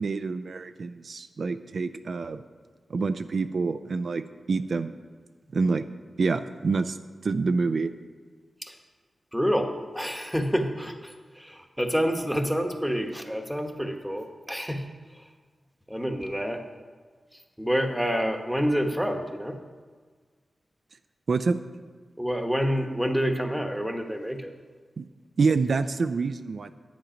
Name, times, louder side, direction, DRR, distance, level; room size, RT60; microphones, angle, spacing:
voice 1, 0.0-2.4 2.9-4.9 5.5-5.8 6.2-7.0 7.2-7.9 21.3-21.6 25.0-25.1 25.4-26.7, right 4 dB, 60° right, 10 dB, 0.4 m, -27 dB
voice 2, 9.3-14.8 15.9-16.6 17.6-19.6 22.2-24.5, equal, ahead, 5 dB, 1.0 m, -28 dB
10.5 x 9.2 x 5.1 m, 1.5 s
wide cardioid pair, 125°, 0 cm